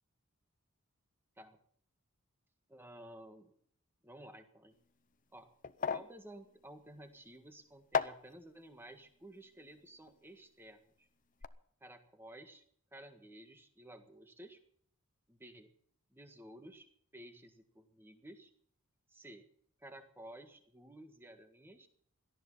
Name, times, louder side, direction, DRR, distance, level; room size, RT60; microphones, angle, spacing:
voice 1, 2.7-3.5 4.0-4.8 5.3-5.5 5.9-11.1 11.8-12.6 12.9-14.6 15.3-15.7 16.1-18.5 19.1-19.5 19.8-21.9, right 1 dB, 10° right, 7 dB, 1.6 m, -54 dB
sound 1, 4.7-10.9 11.2-11.5, left 6 dB, 35° left, 0.7 m, -40 dB
18.0 x 13.0 x 5.6 m, 0.62 s
head